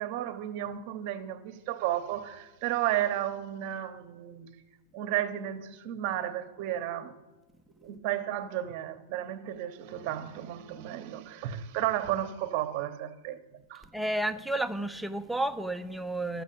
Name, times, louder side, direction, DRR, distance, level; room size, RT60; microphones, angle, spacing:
voice 1, 0.0-4.5 4.9-7.1 7.8-13.4 13.7-13.8, right 12 dB, 40° right, 0.9 m, -33 dB
voice 2, 13.9-16.4, right 1 dB, ahead, 0.4 m, -31 dB
12.0 x 6.1 x 8.4 m
supercardioid pair, 160°, 0 cm